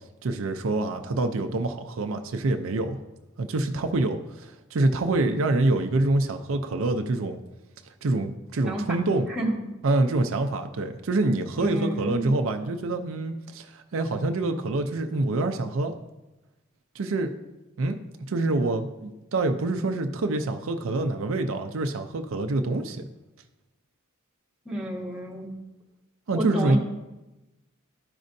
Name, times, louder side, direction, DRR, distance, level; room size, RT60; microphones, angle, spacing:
voice 1, 0.2-3.0 3.4-7.4 8.0-9.3 9.8-15.9 16.9-17.3 17.8-18.0 18.3-23.1 26.3-26.8, right 2 dB, 70° right, 7 dB, 0.5 m, -26 dB
voice 2, 8.6-9.0 9.3-9.6 11.5-12.3 24.6-25.5 26.3-26.8, right 1 dB, 5° right, -4 dB, 1.2 m, -30 dB
12.5 x 5.2 x 2.6 m, 1.0 s
head